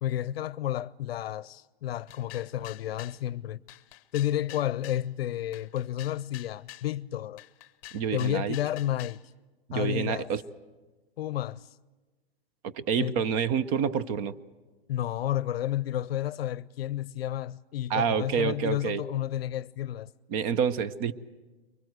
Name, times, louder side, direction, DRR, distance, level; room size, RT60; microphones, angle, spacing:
voice 1, 0.0-3.6 4.1-7.4 8.1-9.2 9.7-10.3 11.2-11.7 13.0-13.2 14.9-20.1, left 12 dB, 70° left, 0.6 m, -31 dB
sound 1, 2.1-3.2 3.7-5.0 5.5-6.9 7.4-9.2, left 17 dB, 35° left, 0.8 m, -47 dB
voice 2, 7.9-8.6 9.7-10.4 12.6-14.3 17.9-19.0 20.3-21.1, right 7 dB, 35° right, 0.7 m, -28 dB
23.5 x 20.0 x 7.9 m
hypercardioid pair, 140°, 31 cm